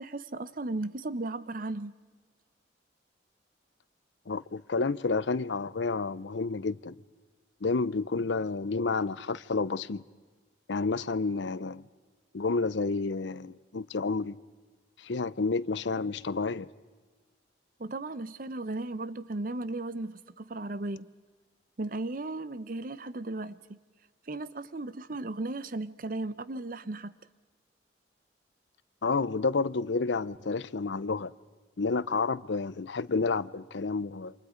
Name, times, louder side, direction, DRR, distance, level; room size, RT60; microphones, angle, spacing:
voice 1, 0.0-1.9 17.8-21.1 21.8-23.8 24.3-27.2, right 2 dB, 45° right, 0.7 m, -36 dB
voice 2, 4.3-7.0 7.6-10.0 10.7-11.8 12.3-14.4 15.0-16.7 29.0-31.3 31.8-34.3, left 4 dB, 75° left, 0.6 m, -30 dB
29.0 x 26.5 x 5.1 m
head